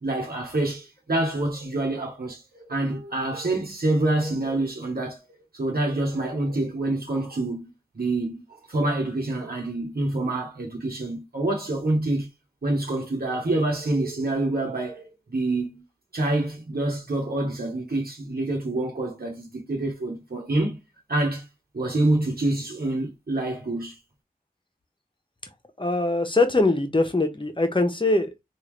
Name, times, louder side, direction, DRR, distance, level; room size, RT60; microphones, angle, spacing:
voice 1, 0.0-2.4 2.7-5.2 5.5-7.7 7.9-12.3 12.6-15.8 16.1-20.8 21.1-21.5 21.7-23.9, right 2 dB, 85° right, 1.0 m, -26 dB
voice 2, 25.8-28.4, left 2 dB, 35° left, 1.0 m, -22 dB
3.6 x 2.6 x 3.1 m
wide cardioid pair, 50°, 15 cm